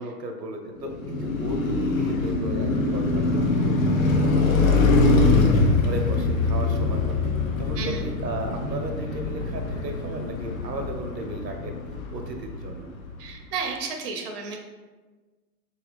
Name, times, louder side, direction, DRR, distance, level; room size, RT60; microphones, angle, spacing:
voice 1, 0.0-7.2 7.6-11.8 12.1-12.9, right 2 dB, 85° right, 4 dB, 0.7 m, -35 dB
Car passing by, 0.8-13.1, left 3 dB, 55° left, 0.6 m, -23 dB
voice 2, 13.2-14.6, right 5 dB, 40° right, 3 dB, 0.5 m, -32 dB
3.8 x 2.3 x 3.4 m, 1.3 s
figure-of-eight pair, 105°, 48 cm